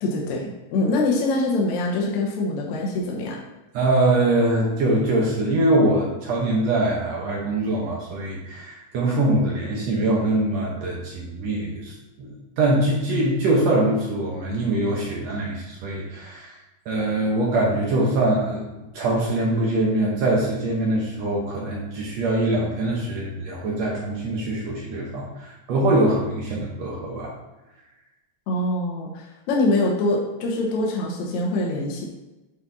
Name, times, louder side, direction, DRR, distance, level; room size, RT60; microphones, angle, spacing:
voice 1, 0.0-3.4 28.5-32.0, left 2 dB, 75° left, -1 dB, 2.3 m, -24 dB
voice 2, 3.7-12.3 12.6-16.5 16.9-18.7 18.9-27.3, right 2 dB, 65° right, -3 dB, 2.2 m, -23 dB
8.7 x 4.1 x 4.1 m, 1.1 s
omnidirectional pair, 3.3 m